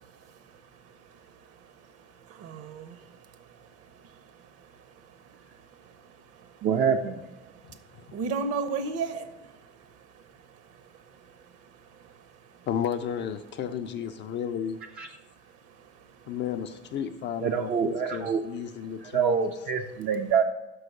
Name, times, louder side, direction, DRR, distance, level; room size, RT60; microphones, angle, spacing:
voice 1, 2.3-3.0 3.4-3.7 4.1-4.2 4.6-4.7 6.4-6.5 7.9-9.3 10.1-10.2 12.0-12.1, right 4 dB, 45° right, 0.8 m, -33 dB
voice 2, 6.6-7.2 15.0-15.1 17.4-18.4 19.0-20.4, right 6 dB, 25° right, 0.4 m, -26 dB
voice 3, 12.7-14.8 16.3-19.5, left 8 dB, 30° left, 0.4 m, -33 dB
6.2 x 4.7 x 6.3 m
figure-of-eight pair, 65°, 35 cm